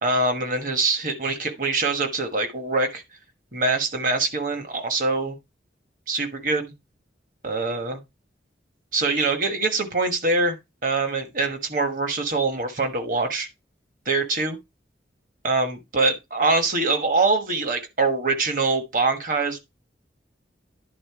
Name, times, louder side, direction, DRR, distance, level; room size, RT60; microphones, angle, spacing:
voice 1, 0.0-3.0 3.5-5.4 6.1-6.7 7.4-8.0 8.9-10.6 10.8-13.5 14.0-14.6 15.4-19.6, right 3 dB, 45° right, 1.3 m, -24 dB
10.5 x 3.6 x 4.7 m
head